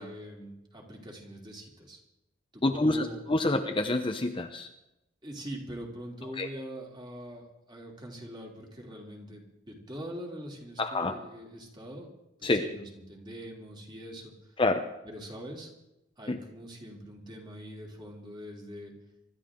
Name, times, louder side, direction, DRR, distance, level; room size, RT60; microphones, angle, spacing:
voice 1, 0.0-2.0 2.5-3.5 5.2-12.1 12.4-14.3 15.0-15.7 16.2-18.9, equal, 25° right, 0 dB, 3.3 m, -43 dB
voice 2, 2.6-3.0 3.3-4.7 6.4-6.5 10.8-11.1 12.4-12.6 14.6-14.8 16.3-16.4, left 2 dB, 25° left, 6 dB, 0.9 m, -27 dB
25.0 x 13.0 x 3.8 m, 0.90 s
head